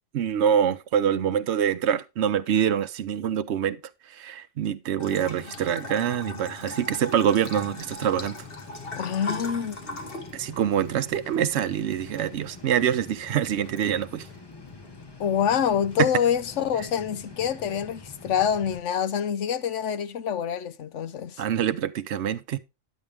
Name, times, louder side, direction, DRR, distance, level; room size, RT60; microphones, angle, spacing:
voice 1, 0.1-3.8 4.1-8.4 10.3-14.3 16.0-16.1 21.4-22.6, right 9 dB, 70° right, 0.9 m, -25 dB
Bathtub (filling or washing) / Trickle dribble, 5.0-16.0, left 2 dB, 50° left, 1.6 m, -41 dB
sound 1, 7.6-18.8, left 4 dB, 20° left, 1.0 m, -46 dB
voice 2, 8.9-9.8 15.2-21.4, left 8 dB, 80° left, 1.1 m, -26 dB
10.0 x 8.3 x 3.4 m
omnidirectional pair, 1.2 m